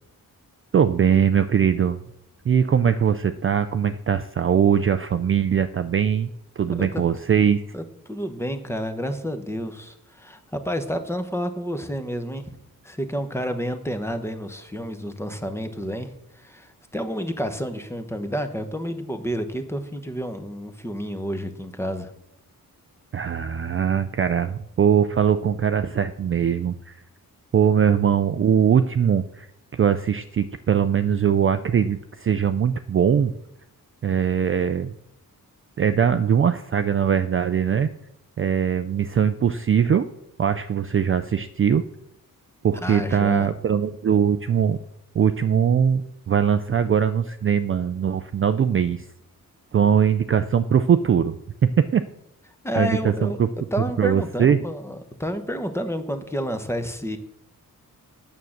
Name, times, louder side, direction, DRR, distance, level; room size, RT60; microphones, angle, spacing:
voice 1, 0.7-2.0 2.5-6.3 6.6-7.6 23.1-27.0 27.5-29.5 29.7-33.3 34.0-34.9 35.8-37.9 38.4-40.1 40.4-41.8 42.6-44.8 45.1-49.0 49.7-51.3 51.6-52.0 52.8-53.5 54.0-54.6, right 8 dB, 40° right, 10 dB, 0.4 m, -21 dB
voice 2, 6.7-7.0 7.7-12.5 12.8-22.1 42.8-43.5 52.6-57.2, equal, 5° left, 7 dB, 0.9 m, -30 dB
9.3 x 7.3 x 6.4 m, 0.78 s
wide cardioid pair, 150°, 35 cm